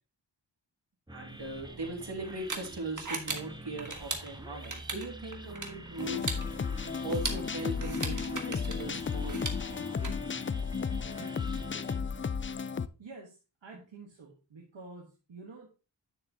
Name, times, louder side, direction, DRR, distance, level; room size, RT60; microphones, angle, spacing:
sound 1, 1.1-12.0, right 1 dB, 10° right, 0.9 m, -47 dB
voice 1, 1.1-6.3 7.0-9.4 9.7-10.1 11.2-11.3, right 2 dB, 65° right, 1 dB, 2.4 m, -39 dB
sound 2, 1.4-10.1, right 3 dB, 45° right, 1.6 m, -40 dB
sound 3, 6.0-12.9, left 6 dB, 30° left, 0.4 m, -34 dB
voice 2, 13.0-15.7, right 3 dB, 85° right, 0 dB, 1.4 m, -49 dB
9.8 x 6.8 x 2.8 m, 0.32 s
wide cardioid pair, 60°, 44 cm